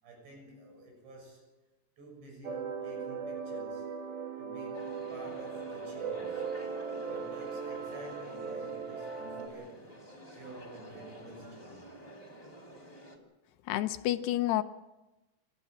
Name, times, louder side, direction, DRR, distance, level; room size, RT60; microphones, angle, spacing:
voice 1, 0.0-1.5 2.0-3.9 4.4-6.5 7.0-11.9, right 2 dB, 80° right, 1 dB, 9.0 m, -50 dB
sound 1, 2.4-9.5, right 5 dB, 60° right, 4.0 m, -38 dB
sound 2, 4.7-13.2, equal, 10° left, 3.5 m, -50 dB
voice 2, 13.7-14.6, left 14 dB, 75° left, 10 dB, 2.9 m, -29 dB
30.0 x 14.0 x 8.9 m, 1.1 s
omnidirectional pair, 5.0 m